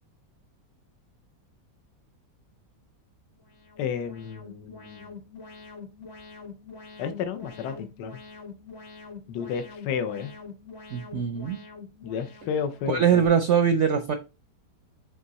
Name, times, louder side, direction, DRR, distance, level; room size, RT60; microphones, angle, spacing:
Alarm, 3.4-13.3, left 4 dB, 40° left, 1.2 m, -45 dB
voice 1, 3.8-5.1 7.0-8.2 9.3-10.3 12.0-13.2, left 7 dB, 75° left, 1.3 m, -32 dB
voice 2, 10.9-11.6 12.9-14.1, right 7 dB, 65° right, 0.7 m, -22 dB
6.5 x 3.7 x 4.0 m
omnidirectional pair, 1.8 m